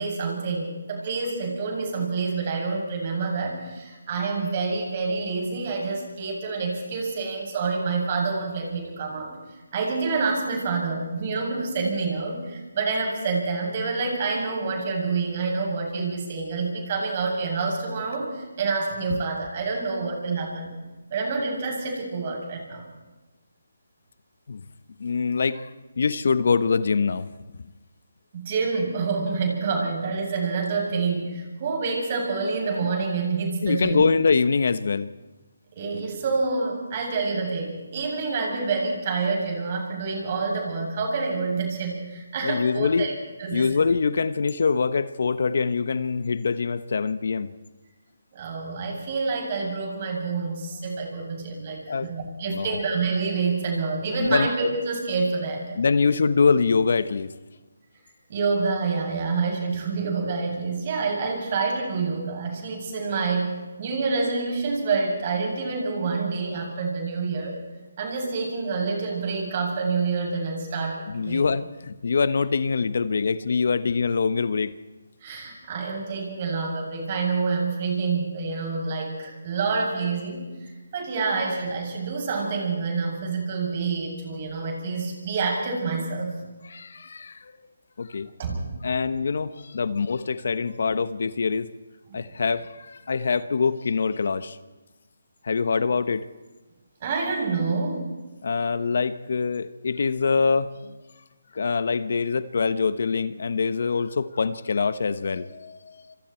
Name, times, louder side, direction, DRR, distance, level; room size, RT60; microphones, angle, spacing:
voice 1, 0.0-9.3 9.7-20.7 21.1-22.8 28.3-34.0 35.7-43.1 43.4-43.7 48.3-55.8 58.3-67.6 68.0-71.4 75.2-86.4 88.4-88.6 92.1-92.3 97.0-98.0, right 4 dB, 35° right, 0 dB, 8.0 m, -27 dB
voice 2, 25.0-25.7 26.0-27.3 33.6-35.1 42.4-43.1 43.5-47.5 51.9-52.1 52.5-52.8 54.2-54.5 55.8-57.3 71.1-74.7 86.6-87.5 88.0-88.3 88.8-91.7 92.1-94.6 95.4-96.3 98.4-100.9 101.5-106.2, left 5 dB, 60° left, 14 dB, 1.1 m, -24 dB
27.5 x 26.0 x 4.5 m, 1.2 s
hypercardioid pair, 160°, 0 cm